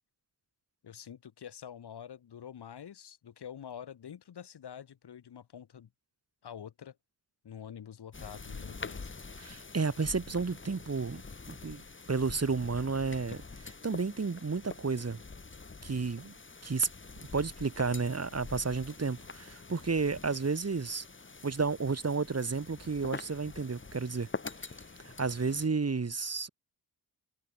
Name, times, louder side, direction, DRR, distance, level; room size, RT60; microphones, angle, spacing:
voice 1, 0.8-5.9 6.4-7.0 7.4-9.1, left 8 dB, 85° left, 5.5 m, -46 dB
sound 1, 8.1-25.7, left 4 dB, 30° left, 2.3 m, -46 dB
voice 2, 9.4-11.2 11.5-15.2 15.8-16.3 16.6-16.9 17.2-21.1 21.4-24.3 25.0-26.5, right 4 dB, 40° right, 3.4 m, -32 dB
cardioid pair, 75°, 39 cm